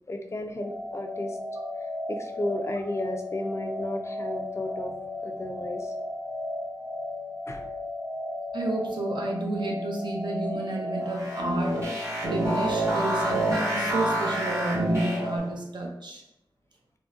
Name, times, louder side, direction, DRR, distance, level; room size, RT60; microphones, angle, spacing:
voice 1, 0.1-1.4 2.1-4.9 5.2-5.9 7.5-7.6, left 1 dB, 35° left, 3 dB, 0.3 m, -33 dB
sound 1, 0.6-15.4, left 1 dB, 5° right, 0.7 m, -35 dB
voice 2, 8.5-16.2, right 2 dB, 60° right, 0 dB, 0.6 m, -31 dB
sound 2, 11.1-15.5, right 1 dB, 35° right, 1.1 m, -28 dB
3.6 x 2.1 x 2.4 m, 0.81 s
wide cardioid pair, 95°, 9 cm